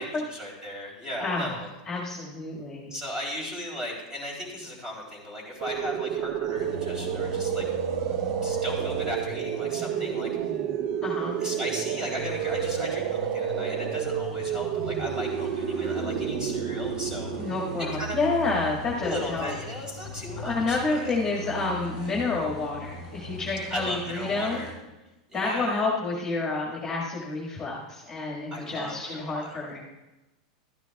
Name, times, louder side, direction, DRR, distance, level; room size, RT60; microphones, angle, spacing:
voice 1, 0.0-1.7 2.9-7.6 8.2-10.5 11.4-17.3 18.0-18.2 19.0-21.2 23.7-24.7 25.3-25.8 28.5-29.7, left 1 dB, 15° right, -1 dB, 3.5 m, -36 dB
voice 2, 1.2-1.6 1.9-2.9 11.0-11.4 17.4-19.5 20.4-24.6 25.3-29.8, left 3 dB, 15° left, -3 dB, 1.8 m, -29 dB
sound 1, 5.6-18.4, right 9 dB, 50° right, 0.6 m, -30 dB
sound 2, 6.5-24.7, left 2 dB, 80° right, 3.0 m, -40 dB
13.0 x 9.7 x 2.3 m, 1.0 s
supercardioid pair, 135°, 4 cm